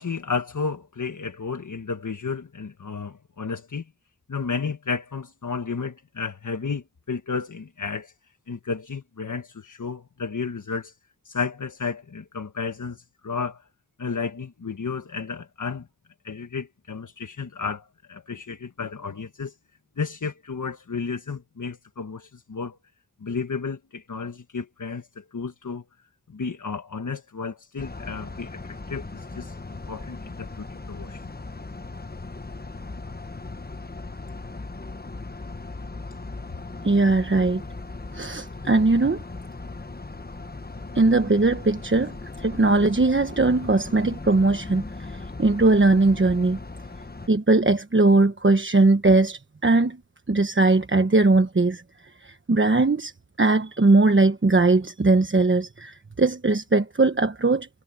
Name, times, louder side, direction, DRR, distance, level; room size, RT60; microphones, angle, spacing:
voice 1, 0.0-3.9 4.3-8.1 8.5-11.0 11.2-13.6 14.0-15.9 16.2-19.5 20.0-22.8 23.2-25.8 26.3-29.6 29.9-31.3, left 5 dB, 80° left, 1.4 m, -32 dB
sound 1, 27.8-47.3, left 3 dB, 30° left, 1.2 m, -38 dB
voice 2, 36.8-37.6 38.1-39.2 40.9-46.6 47.3-50.0 50.3-51.8 52.2-53.1 53.4-57.7, right 3 dB, 40° right, 1.2 m, -20 dB
wide cardioid pair, 45°, 30 cm